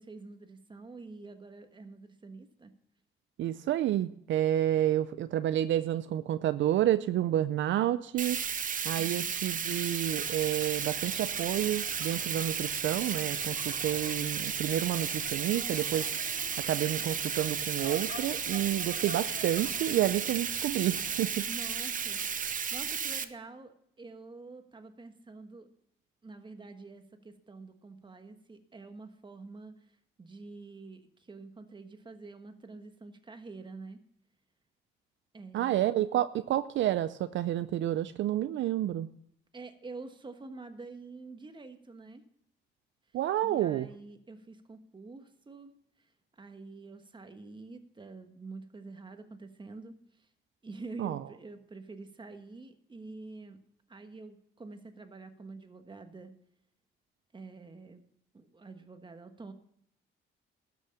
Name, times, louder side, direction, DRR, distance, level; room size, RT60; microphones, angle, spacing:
voice 1, 0.0-2.7 21.5-25.7 26.2-29.7 30.2-34.0 35.3-35.7 39.5-42.2 43.4-45.7 46.4-50.3 50.6-53.6 53.9-56.4 57.3-58.0 58.3-59.5, right 3 dB, 25° right, 8 dB, 1.4 m, -47 dB
voice 2, 3.4-8.4 8.8-16.1 16.7-21.5 35.5-39.1 43.1-43.9 51.0-51.2, right 12 dB, 70° right, 13 dB, 0.5 m, -29 dB
Bathtub (filling or washing), 8.2-23.2, right 7 dB, 40° right, 0.8 m, -34 dB
sound 1, 10.0-21.4, left 4 dB, 60° left, 5.8 m, -49 dB
12.5 x 6.3 x 6.9 m, 0.71 s
cardioid pair, 90°, 20 cm